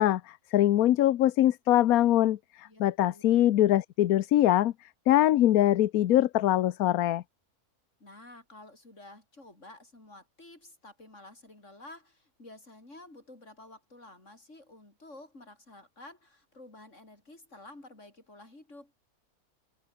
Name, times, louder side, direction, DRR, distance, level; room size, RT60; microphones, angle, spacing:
voice 1, 0.0-4.7 5.1-7.2, left 13 dB, 75° left, 1.1 m, -23 dB
voice 2, 2.6-3.2 8.0-18.9, left 2 dB, 50° left, 6.4 m, -51 dB
omnidirectional pair, 1.6 m